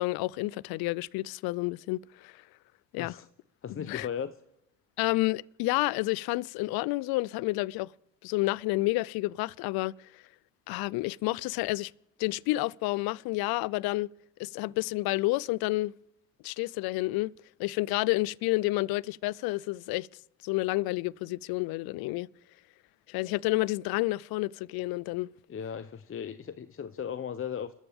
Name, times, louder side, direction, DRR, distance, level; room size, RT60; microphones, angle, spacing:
voice 1, 0.0-2.3 2.9-3.2 3.7-4.1 5.0-7.9 8.2-9.9 10.7-11.9 12.2-14.1 14.4-15.9 16.4-17.3 17.6-20.1 20.4-22.3 23.1-25.3, left 20 dB, 65° left, 0.5 m, -30 dB
voice 2, 3.6-4.3 25.5-27.7, left 8 dB, 30° left, 0.8 m, -36 dB
27.5 x 13.5 x 3.6 m
hypercardioid pair, 65°, 40 cm